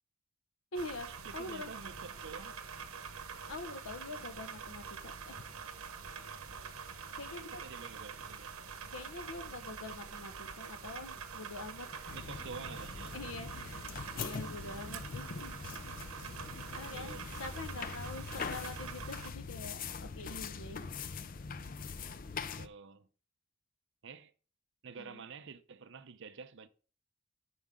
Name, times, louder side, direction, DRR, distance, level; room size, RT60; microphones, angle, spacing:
voice 1, 0.7-1.7 3.5-5.4 7.2-7.6 8.9-12.2 13.1-15.5 15.8-16.0 16.7-21.2 25.0-25.2, left 2 dB, 65° left, 0.9 m, -45 dB
sound 1, 0.7-19.3, right 6 dB, 75° right, 1.2 m, -45 dB
voice 2, 1.3-2.6 7.3-8.6 12.1-13.2 16.9-17.4 22.6-23.1 24.0-24.3 24.8-26.7, right 5 dB, 55° right, 0.6 m, -49 dB
sound 2, 12.1-22.7, left 5 dB, 40° left, 0.5 m, -43 dB
9.5 x 6.2 x 3.7 m
head